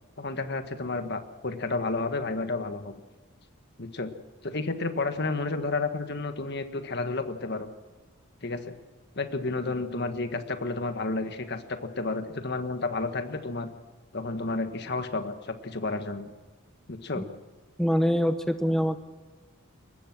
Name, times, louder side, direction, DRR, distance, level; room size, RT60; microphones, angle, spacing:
voice 1, 0.2-3.0 3.8-4.1 4.4-7.7 8.4-8.7 9.1-13.7 14.1-16.3 16.9-17.3, left 3 dB, 50° left, 8 dB, 1.5 m, -31 dB
voice 2, 17.8-19.0, equal, ahead, 8 dB, 0.8 m, -24 dB
23.0 x 19.5 x 6.1 m, 1.4 s
head